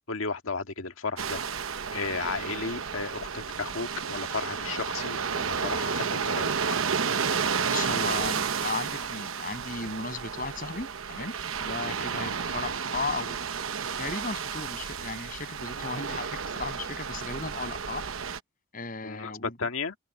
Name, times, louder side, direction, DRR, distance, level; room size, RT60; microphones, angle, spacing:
voice 1, 0.1-1.4 1.9-6.5 19.0-20.0, left 4 dB, 80° left, 1.8 m, -34 dB
sound 1, 1.2-18.4, right 6 dB, 80° right, 1.0 m, -32 dB
voice 2, 7.7-11.3 11.6-13.4 14.0-18.1 18.7-19.6, left 3 dB, 40° left, 7.1 m, -35 dB
head